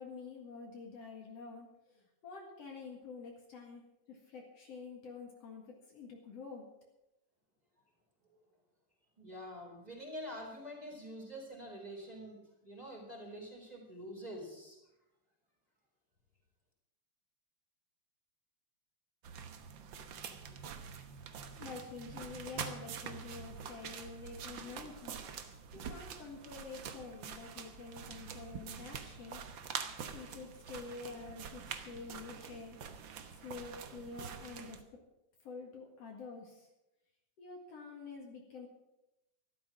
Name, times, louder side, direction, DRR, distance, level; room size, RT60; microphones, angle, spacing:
voice 1, 0.0-3.8 4.1-6.6 20.5-20.6 21.6-25.2 25.4-29.4 30.1-32.8 33.3-34.8 35.4-36.7 37.4-38.7, left 4 dB, 60° left, 0 dB, 2.8 m, -48 dB
voice 2, 9.2-14.8, equal, 15° right, -2 dB, 4.1 m, -46 dB
sound 1, 19.2-34.8, right 7 dB, 60° right, 1.3 m, -46 dB
13.5 x 12.5 x 6.1 m, 0.92 s
omnidirectional pair, 3.4 m